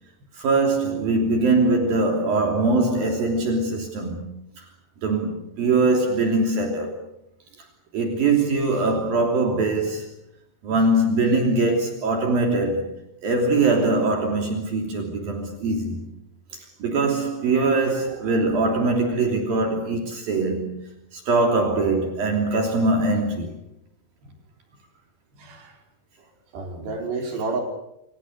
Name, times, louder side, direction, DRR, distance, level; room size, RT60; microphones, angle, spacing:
voice 1, 0.3-4.2 4.6-4.7 5.0-7.0 7.9-10.1 10.6-16.0 16.8-23.6, right 3 dB, 60° right, 4.8 m, -22 dB
voice 2, 25.4-25.7 26.5-27.6, right 3 dB, 90° right, 6.6 m, -30 dB
28.0 x 27.5 x 6.7 m
omnidirectional pair, 4.7 m